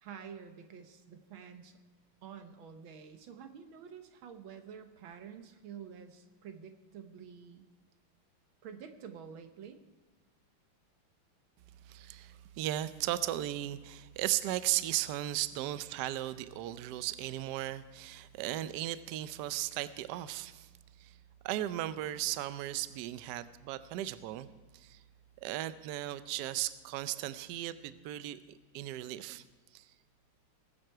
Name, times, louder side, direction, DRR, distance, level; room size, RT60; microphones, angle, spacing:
voice 1, 0.0-1.8 2.2-7.7 8.6-9.8, right 7 dB, 70° right, 7 dB, 1.7 m, -49 dB
voice 2, 11.8-20.7 21.0-21.2 21.4-25.0 25.4-29.4 29.7-29.9, right 14 dB, 85° right, 14 dB, 0.9 m, -36 dB
20.5 x 7.7 x 4.6 m, 1.3 s
omnidirectional pair, 2.4 m